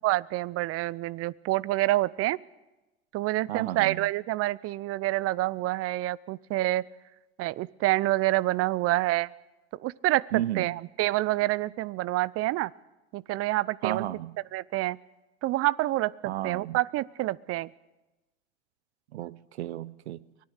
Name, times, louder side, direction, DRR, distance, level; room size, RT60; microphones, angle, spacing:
voice 1, 0.0-2.4 3.1-6.8 7.4-9.3 9.8-12.7 13.1-14.1 14.5-15.0 15.4-17.7, right 17 dB, 45° right, 0.6 m, -27 dB
voice 2, 3.5-4.1 10.3-10.8 13.8-14.4 16.2-16.8 19.1-20.2, right 13 dB, 85° right, 0.7 m, -33 dB
24.5 x 18.0 x 6.5 m
hypercardioid pair, 85°, 32 cm